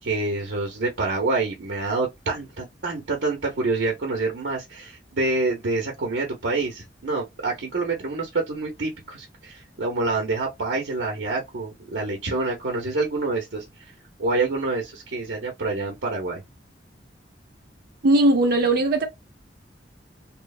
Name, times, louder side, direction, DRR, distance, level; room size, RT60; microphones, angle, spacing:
voice 1, 0.0-13.9 14.2-16.4, right 3 dB, 85° right, 0.8 m, -27 dB
voice 2, 18.0-19.1, right 2 dB, 55° right, 0.5 m, -18 dB
3.0 x 2.1 x 2.3 m
head